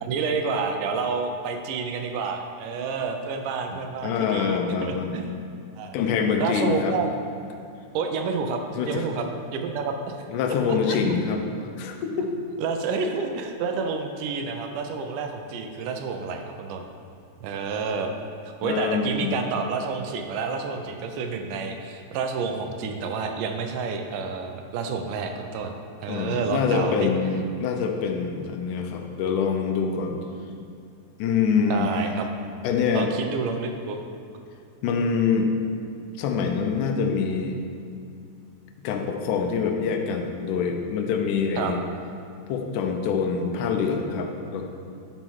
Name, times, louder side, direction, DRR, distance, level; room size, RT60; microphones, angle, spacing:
voice 1, 0.0-5.3 5.8-6.0 6.4-7.1 7.9-9.3 9.5-10.2 10.9-11.0 12.2-12.3 12.6-16.9 17.4-18.1 18.6-27.1 31.7-32.3 32.9-34.0 41.6-41.7, right 5 dB, 85° right, 5 dB, 2.2 m, -29 dB
voice 2, 3.7-5.3 5.9-7.0 8.8-9.1 10.3-11.4 11.8-12.3 18.6-19.3 26.1-30.2 31.2-32.1 32.6-33.1 34.8-35.5 36.2-37.6 38.8-41.8 42.5-44.6, left 5 dB, 85° left, 4 dB, 2.2 m, -25 dB
11.0 x 4.4 x 4.6 m, 2.4 s
omnidirectional pair, 3.7 m